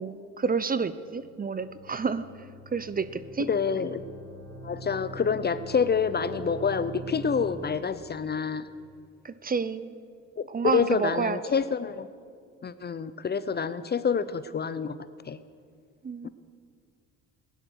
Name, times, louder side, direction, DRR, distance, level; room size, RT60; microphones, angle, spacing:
voice 1, 0.0-2.3 2.7-3.5 9.2-9.9 10.5-11.4 16.0-16.3, right 5 dB, 25° right, 14 dB, 0.6 m, -29 dB
sound 1, 1.2-8.0, right 1 dB, 5° right, 5.0 m, -43 dB
voice 2, 3.5-4.0 4.6-8.6 10.4-12.1 12.6-15.0 15.3-15.4 16.2-16.3, left 6 dB, 30° left, 15 dB, 0.6 m, -27 dB
16.0 x 11.0 x 6.5 m, 2.2 s
supercardioid pair, 70°, 35 cm